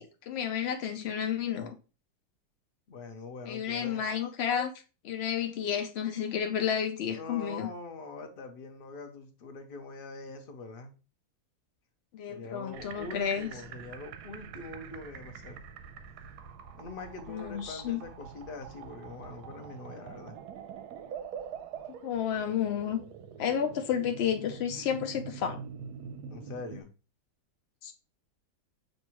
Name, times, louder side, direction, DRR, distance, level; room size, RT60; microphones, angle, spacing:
voice 1, 0.0-1.8 3.5-4.7 5.0-7.7 12.1-13.5 17.3-18.0 22.0-23.0 23.4-25.6 27.8-27.9, left 8 dB, 90° left, 0.5 m, -31 dB
voice 2, 2.9-4.0 7.1-10.9 12.3-15.6 16.7-20.4 26.3-26.9, left 3 dB, 50° left, 0.7 m, -43 dB
Wet Cork Membrane, 12.7-26.8, right 7 dB, 85° right, 1.2 m, -45 dB
6.4 x 2.6 x 2.9 m
omnidirectional pair, 1.7 m